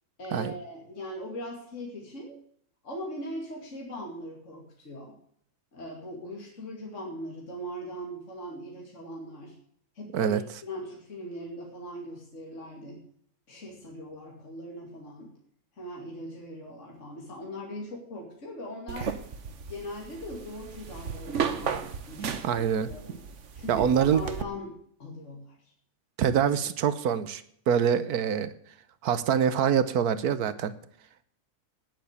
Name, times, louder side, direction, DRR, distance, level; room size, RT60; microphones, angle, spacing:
voice 1, 0.2-2.4 2.8-5.1 5.7-9.6 9.9-13.0 13.5-15.3 15.8-19.2 19.7-22.4 22.7-23.2 23.5-25.6, equal, 50° left, -1 dB, 2.9 m, -40 dB
sound 1, 18.9-24.4, right 6 dB, 55° right, 1.3 m, -35 dB
voice 2, 22.2-22.9 23.7-24.2 26.2-28.5 29.0-30.7, right 8 dB, 75° right, 14 dB, 1.4 m, -25 dB
9.9 x 9.3 x 8.3 m, 0.65 s
omnidirectional pair, 1.6 m